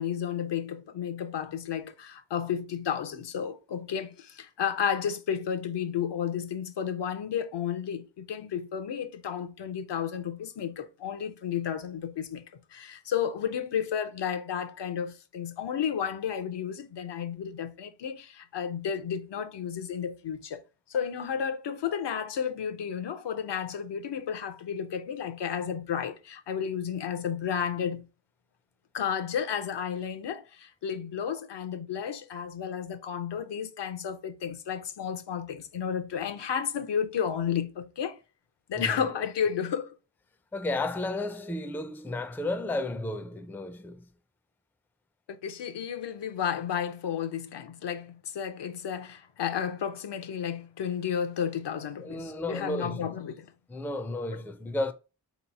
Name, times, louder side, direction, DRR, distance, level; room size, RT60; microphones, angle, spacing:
voice 1, 0.0-12.4 12.7-20.6 20.9-28.0 28.9-38.2 38.7-40.0 45.4-53.5, left 8 dB, 75° left, 0.6 m, -32 dB
voice 2, 38.7-39.1 40.5-44.0 52.0-53.1 53.7-54.9, left 2 dB, 5° left, 0.3 m, -33 dB
3.9 x 3.0 x 4.0 m
wide cardioid pair, 105°, 42 cm